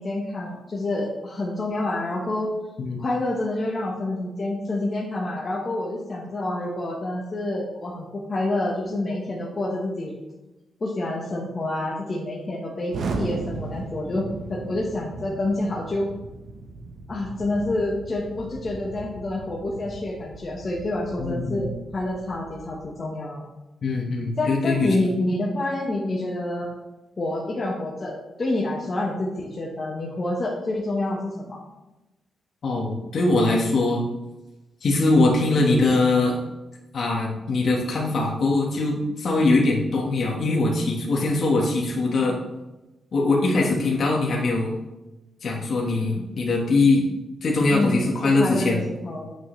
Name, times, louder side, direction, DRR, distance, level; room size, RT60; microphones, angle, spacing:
voice 1, 0.0-2.5 3.0-10.1 10.8-16.1 17.1-23.4 24.4-26.7 27.2-31.6 47.7-49.3, left 2 dB, 35° left, -3 dB, 1.4 m, -28 dB
Explosion, 12.9-22.8, right 3 dB, 70° right, 1.1 m, -37 dB
voice 2, 21.2-21.7 23.8-25.2 32.6-34.0 34.8-36.4 36.9-42.3 43.1-44.7 45.4-47.0 47.4-48.8, left 2 dB, 55° left, -2 dB, 1.5 m, -22 dB
8.9 x 6.5 x 3.3 m, 1.0 s
cardioid pair, 100°, 0 cm